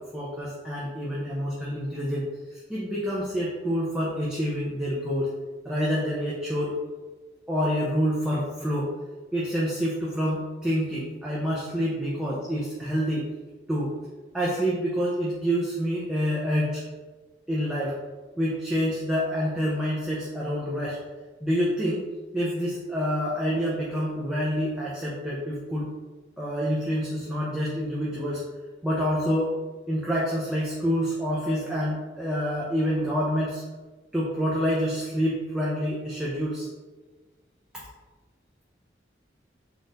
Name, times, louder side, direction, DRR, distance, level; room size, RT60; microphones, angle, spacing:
voice 1, 0.0-5.3 5.6-6.7 7.5-8.9 9.3-13.3 13.7-13.9 14.3-16.8 17.5-18.0 18.4-21.0 21.4-22.0 22.3-25.9 26.4-28.4 28.8-29.5 29.9-33.6 34.1-36.7, equal, 5° right, -7 dB, 0.5 m, -27 dB
3.9 x 2.5 x 3.8 m, 1.3 s
head